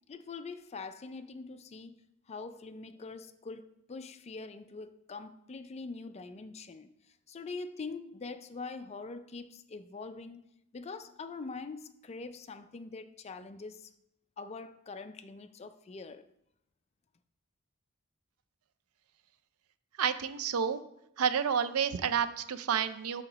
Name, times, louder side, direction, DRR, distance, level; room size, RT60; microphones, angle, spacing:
voice 1, 0.1-2.0 2.3-6.9 7.3-13.9 14.4-16.2, left 4 dB, 30° left, 0.4 m, -43 dB
voice 2, 20.0-20.8 21.2-23.2, right 7 dB, 90° right, 0.5 m, -30 dB
8.6 x 2.9 x 6.0 m
head